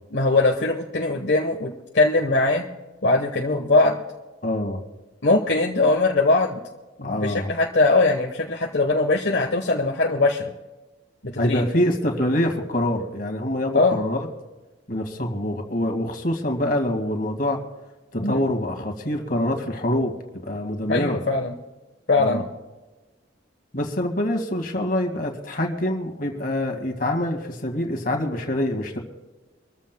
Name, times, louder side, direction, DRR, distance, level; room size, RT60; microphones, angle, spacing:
voice 1, 0.1-2.7 3.0-4.0 5.2-6.6 7.0-10.5 11.2-11.6 13.7-14.0 18.2-18.4 20.9-21.5 22.1-22.4, left 2 dB, 65° left, 0 dB, 1.3 m, -21 dB
voice 2, 4.4-4.8 7.0-7.5 11.4-14.3 14.9-17.6 18.1-20.1 20.4-21.2 22.2-22.4 23.7-29.0, left 1 dB, 50° left, 3 dB, 2.2 m, -25 dB
25.5 x 14.5 x 2.3 m, 1.1 s
head